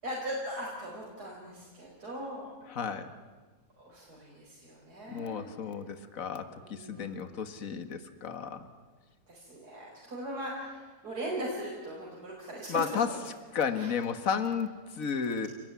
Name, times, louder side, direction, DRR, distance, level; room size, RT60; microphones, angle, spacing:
voice 1, 0.0-2.5 3.8-5.5 6.6-7.2 9.3-13.0 13.8-13.9, right 1 dB, 65° right, -4 dB, 5.9 m, -39 dB
voice 2, 2.7-3.1 5.1-8.7 12.7-13.1 13.5-15.5, left 6 dB, 55° left, 9 dB, 2.1 m, -33 dB
29.5 x 20.0 x 9.8 m, 1.4 s
omnidirectional pair, 1.8 m